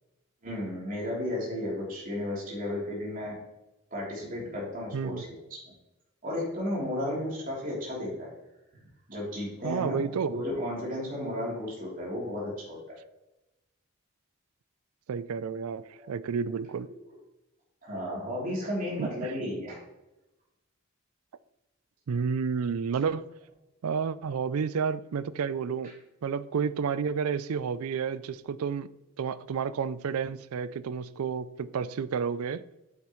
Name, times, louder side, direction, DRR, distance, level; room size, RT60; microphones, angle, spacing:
voice 1, 0.4-3.4 3.9-5.4 6.2-8.3 9.1-13.0 16.0-16.1 16.7-16.8 17.8-19.8 25.8-25.9, left 1 dB, 40° right, 3.2 m, -34 dB
voice 2, 4.9-5.2 9.6-10.4 15.1-16.9 19.0-19.3 22.1-23.3 23.8-26.0 26.2-28.9 29.2-32.6, right 6 dB, 85° right, 0.4 m, -31 dB
9.0 x 7.4 x 3.1 m
head